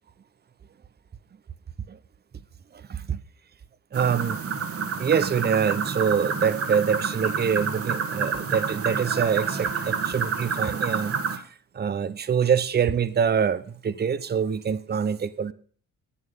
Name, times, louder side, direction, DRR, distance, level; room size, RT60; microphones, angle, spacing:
voice 1, 2.7-3.2 3.9-4.4 5.0-11.4 11.7-15.5, right 7 dB, 35° right, 0.9 m, -25 dB
sound 1, 3.9-11.4, right 5 dB, 50° right, 1.7 m, -29 dB
11.5 x 8.8 x 7.0 m
cardioid pair, 90°, 30 cm